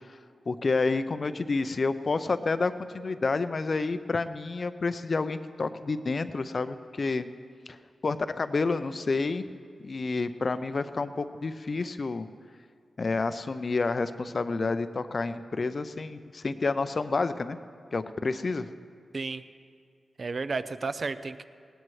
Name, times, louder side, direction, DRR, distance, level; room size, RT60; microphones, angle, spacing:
voice 1, 0.5-7.3 7.7-7.8 8.0-9.4 9.8-12.3 13.0-17.6 17.9-18.7, left 3 dB, 40° left, 11 dB, 0.5 m, -29 dB
voice 2, 19.1-19.4 20.2-21.4, right 4 dB, 40° right, 12 dB, 0.4 m, -32 dB
19.5 x 18.0 x 3.2 m, 2.2 s
wide cardioid pair, 145°, 0 cm